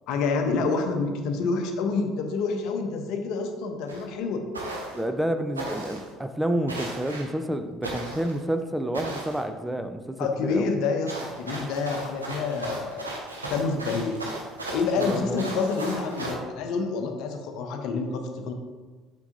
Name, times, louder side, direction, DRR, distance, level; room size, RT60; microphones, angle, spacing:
voice 1, 0.1-4.4 10.2-13.1 13.5-14.2 14.7-18.5, left 4 dB, 60° left, 5 dB, 0.7 m, -28 dB
sound 1, 3.9-4.0 4.5-5.0 5.6-6.1 6.7-7.3 7.8-8.4 8.9-9.4 11.1-16.3, right 2 dB, 85° right, 0.9 m, -36 dB
voice 2, 4.9-10.7 15.0-15.5, right 1 dB, 10° right, 8 dB, 0.4 m, -29 dB
7.1 x 5.4 x 2.5 m, 1.3 s
figure-of-eight pair, 60°, 0 cm